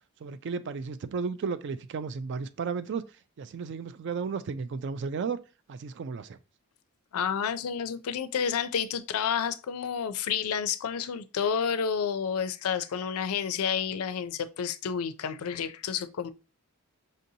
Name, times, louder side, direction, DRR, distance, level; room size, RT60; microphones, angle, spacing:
voice 1, 0.2-3.1 3.4-5.4 5.7-6.4, right 5 dB, 50° right, 0.3 m, -33 dB
voice 2, 7.1-16.3, left 7 dB, 70° left, 0.4 m, -30 dB
5.2 x 2.7 x 2.7 m
head